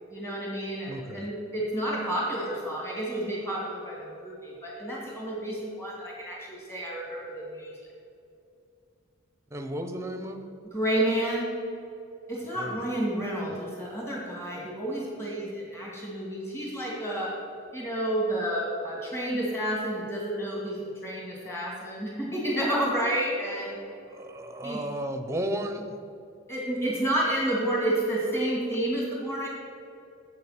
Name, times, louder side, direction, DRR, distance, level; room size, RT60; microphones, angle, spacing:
voice 1, 0.1-7.7 10.7-11.5 12.3-17.3 17.7-23.8 24.6-24.8 26.5-29.5, right 1 dB, 10° left, -4 dB, 2.2 m, -30 dB
voice 2, 0.9-1.3 9.5-10.5 12.6-12.8 24.1-26.0, right 1 dB, 15° right, 7 dB, 0.6 m, -34 dB
8.0 x 7.6 x 5.8 m, 2.6 s
head